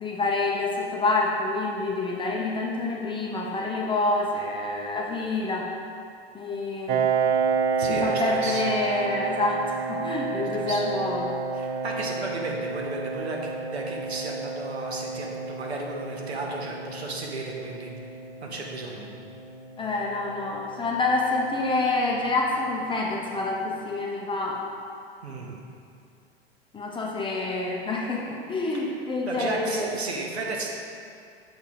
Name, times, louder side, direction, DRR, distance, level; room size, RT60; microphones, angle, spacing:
voice 1, 0.0-5.7 6.3-7.0 7.9-11.3 19.8-24.6 26.7-29.9, left 2 dB, 15° left, -2 dB, 0.6 m, -27 dB
Piano, 6.9-22.2, right 5 dB, 30° right, 0.4 m, -31 dB
voice 2, 7.8-8.6 10.4-10.8 11.5-17.9 18.4-19.1 25.2-25.6 28.8-28.9 29.3-30.7, right 2 dB, 85° right, -1 dB, 0.9 m, -34 dB
6.9 x 4.0 x 3.6 m, 2.4 s
figure-of-eight pair, 90°, 32 cm